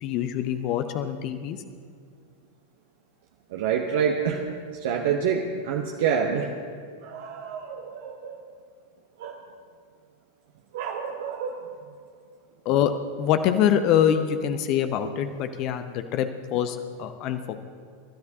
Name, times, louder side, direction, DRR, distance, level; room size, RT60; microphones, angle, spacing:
voice 1, 0.0-1.6 12.6-12.9 13.2-17.6, left 9 dB, 40° left, 9 dB, 0.8 m, -24 dB
voice 2, 3.5-4.4 4.7-6.5 7.0-8.4 9.2-9.4 10.7-11.6, right 7 dB, 55° right, 1 dB, 1.0 m, -27 dB
28.5 x 13.0 x 2.8 m, 2.2 s
figure-of-eight pair, 90°, 0 cm